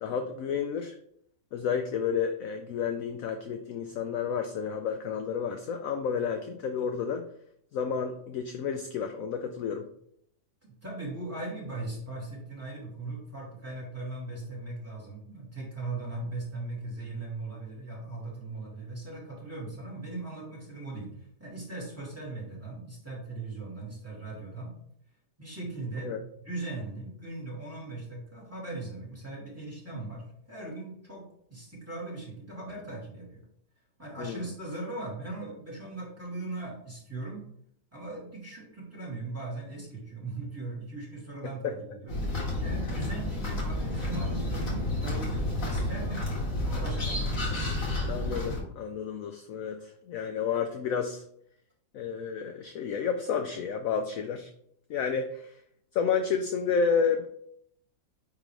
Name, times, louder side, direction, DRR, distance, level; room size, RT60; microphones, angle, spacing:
voice 1, 0.0-0.9 1.5-7.2 7.7-9.9 26.0-26.2 34.2-34.4 41.4-41.7 48.1-51.2 51.9-54.5 54.9-55.6 55.9-57.3, left 6 dB, 70° left, 6 dB, 0.8 m, -31 dB
voice 2, 10.6-24.7 25.4-33.4 34.0-37.4 37.9-42.2 42.6-46.2 46.6-47.7, right 2 dB, 10° right, -5 dB, 2.5 m, -39 dB
sound 1, 42.1-48.6, left 1 dB, 50° left, 2.2 m, -30 dB
9.5 x 3.8 x 3.3 m, 0.69 s
omnidirectional pair, 1.9 m